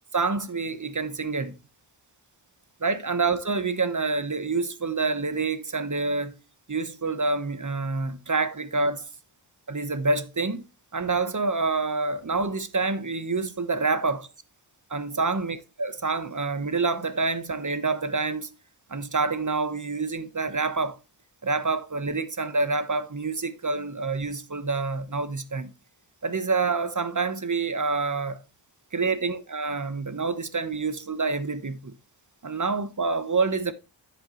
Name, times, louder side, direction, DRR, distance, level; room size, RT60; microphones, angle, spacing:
voice 1, 0.1-1.6 2.8-6.4 6.7-9.1 9.7-10.6 10.9-14.3 14.9-18.5 18.9-21.0 21.4-25.7 26.2-28.4 28.9-31.9 32.4-33.7, right 3 dB, 40° right, 1.2 m, -27 dB
9.5 x 8.1 x 3.1 m
cardioid pair, 40°, 47 cm